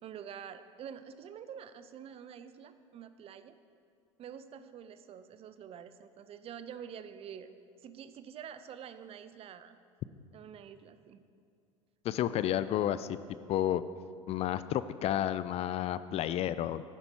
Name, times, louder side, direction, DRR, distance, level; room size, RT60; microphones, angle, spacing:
voice 1, 0.0-3.6 4.2-7.5 7.8-9.8 10.3-11.2, right 8 dB, 35° right, 12 dB, 0.6 m, -47 dB
voice 2, 12.0-13.1 13.5-13.8 14.3-16.8, left 11 dB, 40° left, 14 dB, 0.4 m, -31 dB
10.0 x 9.2 x 4.5 m, 2.4 s
hypercardioid pair, 75°, 16 cm